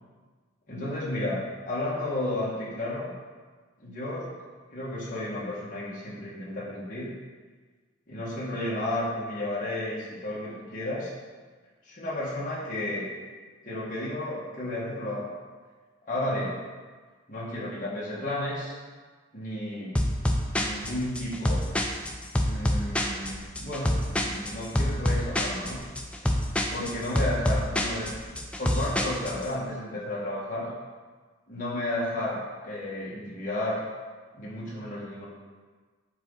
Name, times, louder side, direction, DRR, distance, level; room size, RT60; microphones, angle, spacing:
voice 1, 0.7-3.1 3.8-4.3 4.7-7.1 8.1-11.1 11.8-13.1 13.6-15.3 16.1-16.6 17.3-18.7 19.3-20.0 20.5-21.6 22.4-25.8 26.7-28.1 28.6-30.7 31.5-33.8 34.3-35.3, left 1 dB, 40° left, -7 dB, 1.6 m, -32 dB
sound 1, 20.0-29.5, left 1 dB, 5° left, 0.4 m, -27 dB
7.1 x 4.2 x 3.9 m, 1.4 s
head